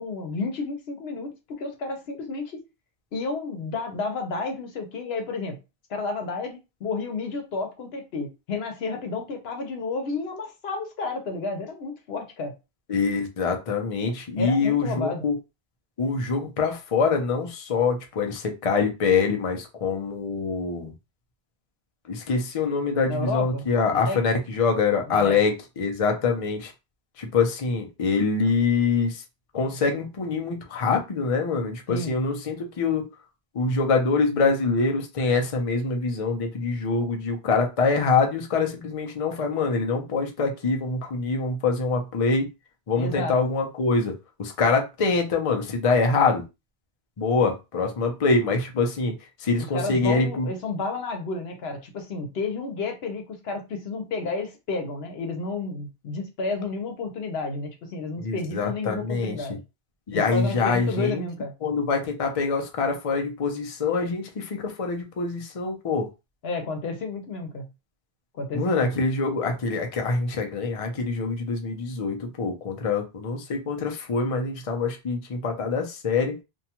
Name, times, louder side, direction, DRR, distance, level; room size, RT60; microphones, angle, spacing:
voice 1, 0.0-2.6 3.1-5.6 5.9-12.5 14.4-15.2 23.1-24.2 25.1-25.4 31.9-32.2 43.0-43.4 49.6-59.6 60.1-61.5 66.4-67.7 68.3-68.9, left 3 dB, 85° left, 1.0 m, -31 dB
voice 2, 12.9-15.4 16.0-20.9 22.1-26.7 27.2-29.2 29.5-33.1 33.5-42.5 42.9-44.1 44.4-46.4 47.2-49.1 49.4-50.5 58.2-59.4 60.1-61.2 61.6-66.1 68.5-76.4, left 4 dB, 40° left, 0.6 m, -25 dB
2.6 x 2.3 x 2.8 m
omnidirectional pair, 1.0 m